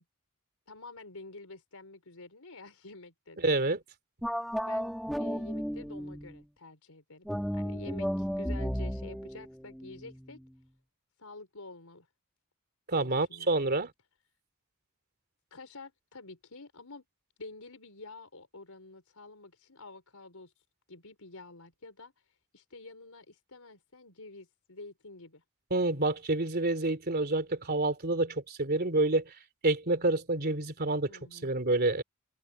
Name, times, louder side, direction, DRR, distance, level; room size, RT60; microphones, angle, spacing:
voice 1, 0.7-3.5 4.6-7.3 7.5-10.4 11.2-12.1 12.9-13.5 15.5-17.0 17.4-20.5 20.9-22.1 22.5-25.4 31.1-31.6, left 3 dB, 85° left, 4.4 m, -49 dB
voice 2, 3.4-3.8 12.9-13.9 25.7-29.2 29.6-32.0, right 2 dB, 45° right, 3.2 m, -28 dB
sound 1, 4.2-6.5 7.2-10.6, equal, ahead, 3.6 m, -34 dB
open air
head